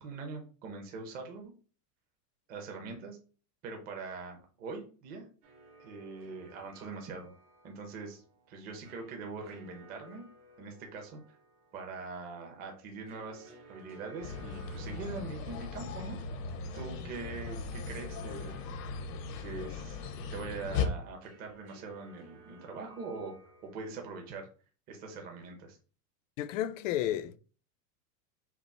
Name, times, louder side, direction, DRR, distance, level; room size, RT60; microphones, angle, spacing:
voice 1, 0.0-1.5 2.5-3.2 3.6-5.2 5.8-7.3 7.6-8.2 8.5-10.2 10.6-11.2 11.7-16.2 16.7-18.7 19.4-20.0 20.3-23.3 23.6-24.5 24.9-25.8, right 4 dB, 20° right, 0.7 m, -42 dB
sound 1, 5.4-24.3, right 3 dB, 80° right, 2.2 m, -58 dB
sound 2, 14.2-20.9, left 5 dB, 80° left, 1.1 m, -38 dB
voice 2, 26.4-27.4, left 12 dB, 55° left, 0.5 m, -32 dB
6.0 x 2.0 x 4.1 m
supercardioid pair, 175°, 47 cm